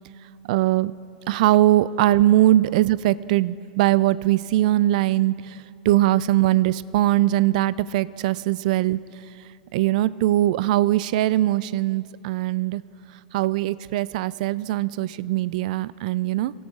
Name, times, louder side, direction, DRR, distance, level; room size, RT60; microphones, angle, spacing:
voice 1, 0.5-0.9 1.3-5.6 5.9-9.0 9.7-12.8 13.3-16.5, right 14 dB, 55° right, 19 dB, 0.3 m, -21 dB
25.0 x 16.5 x 2.4 m, 2.8 s
figure-of-eight pair, 95°, 5 cm